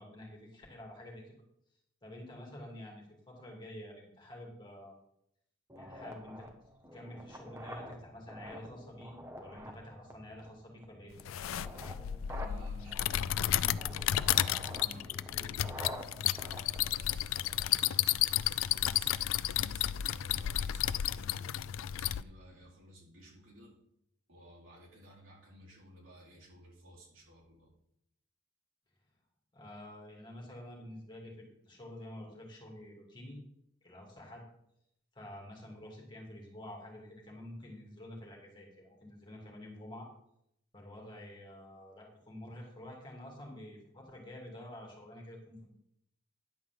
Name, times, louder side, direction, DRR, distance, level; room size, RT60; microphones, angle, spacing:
voice 1, 0.0-1.4 2.0-5.0 5.8-6.5 6.9-11.3 29.5-33.4 33.8-34.4 35.1-40.1 40.7-45.7, left 1 dB, 20° left, -1 dB, 2.7 m, -49 dB
sound 1, 5.7-17.7, equal, 15° right, 1.1 m, -48 dB
sound 2, 11.2-22.2, left 12 dB, 90° left, 0.4 m, -32 dB
voice 2, 12.3-15.6 16.4-18.4 18.7-21.5 21.9-23.8 24.3-27.7, equal, 80° right, -4 dB, 4.3 m, -55 dB
10.5 x 4.8 x 7.6 m, 0.75 s
head